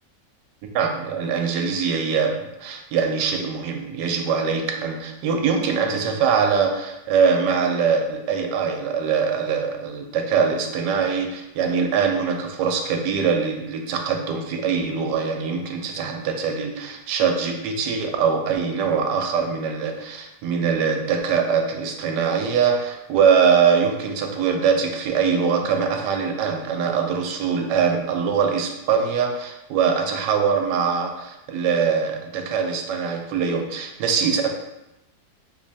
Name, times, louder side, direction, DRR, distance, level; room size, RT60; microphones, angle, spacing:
voice 1, 0.7-34.5, right 6 dB, 75° right, 3 dB, 1.1 m, -22 dB
3.3 x 3.1 x 2.7 m, 0.91 s
omnidirectional pair, 1.9 m